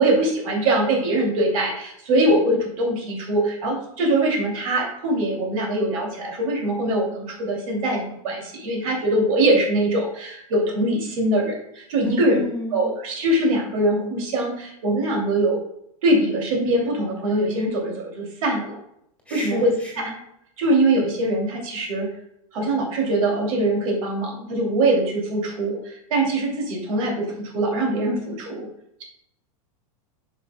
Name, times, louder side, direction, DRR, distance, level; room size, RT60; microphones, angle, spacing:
voice 1, 0.0-12.4 12.7-15.6 16.0-18.8 19.3-19.7 20.0-20.1 20.6-22.1 22.5-27.2 27.5-28.6, right 1 dB, 70° right, 0 dB, 2.6 m, -22 dB
voice 2, 12.0-12.9 19.3-20.1, left 3 dB, 5° left, -2 dB, 1.8 m, -30 dB
9.1 x 5.9 x 2.2 m, 0.75 s
supercardioid pair, 160°, 18 cm